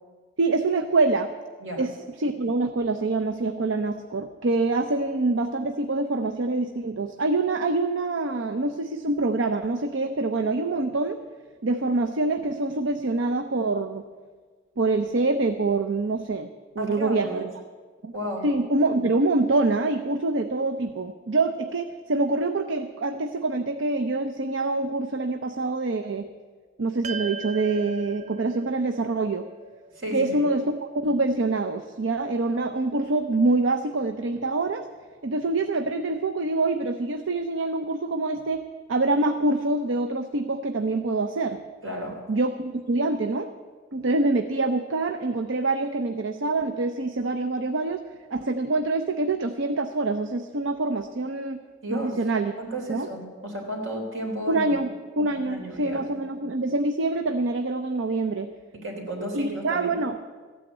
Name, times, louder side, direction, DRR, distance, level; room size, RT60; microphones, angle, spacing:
voice 1, 0.4-1.3 1.8-1.9 2.2-11.2 11.6-14.0 14.8-16.5 16.8-17.5 18.0-18.1 18.4-26.3 26.8-29.5 30.1-34.9 35.2-38.6 38.9-41.6 42.3-43.5 43.9-48.0 48.3-51.6 51.9-52.5 52.9-53.1 54.5-54.9 55.2-58.5 59.3-60.2, right 2 dB, 70° right, 7 dB, 0.7 m, -25 dB
voice 2, 16.8-17.5 18.1-18.5 30.0-30.5 41.8-42.2 51.8-52.2 52.6-54.7 55.3-56.0 58.7-59.9, right 1 dB, 90° right, 1 dB, 3.3 m, -33 dB
sound 1, 27.0-31.5, right 4 dB, 35° right, 0.4 m, -40 dB
14.5 x 9.3 x 8.2 m, 1.5 s
head